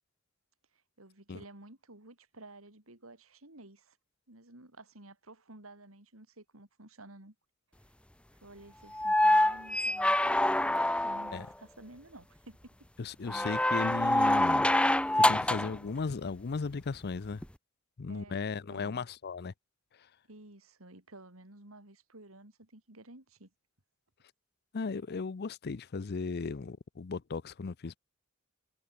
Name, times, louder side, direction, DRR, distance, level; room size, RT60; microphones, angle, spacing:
voice 1, 1.0-4.0 4.3-7.3 8.4-12.9 18.1-19.1 20.3-23.5, right 2 dB, 85° right, 4.4 m, -53 dB
sound 1, 8.9-11.5 13.3-15.8 17.4-17.5, left 1 dB, 5° left, 0.8 m, -26 dB
voice 2, 13.0-14.7 15.2-17.4 18.0-19.5 24.7-28.0, left 4 dB, 50° left, 0.5 m, -36 dB
head